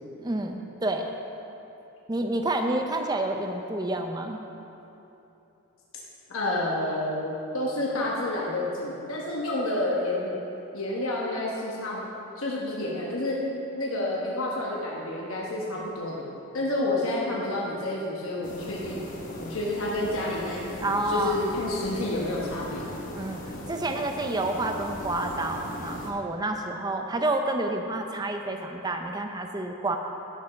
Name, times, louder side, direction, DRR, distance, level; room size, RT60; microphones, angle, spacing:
voice 1, 0.2-1.1 2.1-4.4 20.8-21.4 23.1-23.4 23.7-30.0, right 2 dB, 20° right, 4 dB, 0.5 m, -29 dB
voice 2, 6.3-10.4 10.7-12.0 12.4-13.4 13.7-16.2 16.5-19.0 19.4-23.0, left 1 dB, 65° left, -4 dB, 1.1 m, -29 dB
sound 1, 18.4-26.1, left 1 dB, 35° left, 1.0 m, -39 dB
11.5 x 5.4 x 5.9 m, 2.9 s
head